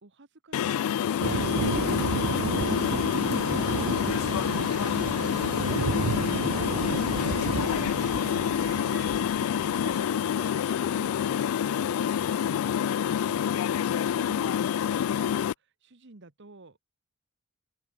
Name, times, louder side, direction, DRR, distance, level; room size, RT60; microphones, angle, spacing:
voice 1, 0.0-2.7 3.6-6.0 7.7-8.1 8.5-14.7 15.0-16.8, right 3 dB, 55° right, 1.3 m, -51 dB
sound 1, 0.5-15.5, left 9 dB, 85° left, 0.3 m, -27 dB
sound 2, 1.2-10.0, right 5 dB, 90° right, 0.5 m, -32 dB
voice 2, 6.0-7.9 8.5-8.7 11.8-12.3 13.1-13.6, right 2 dB, 30° right, 1.8 m, -50 dB
open air
head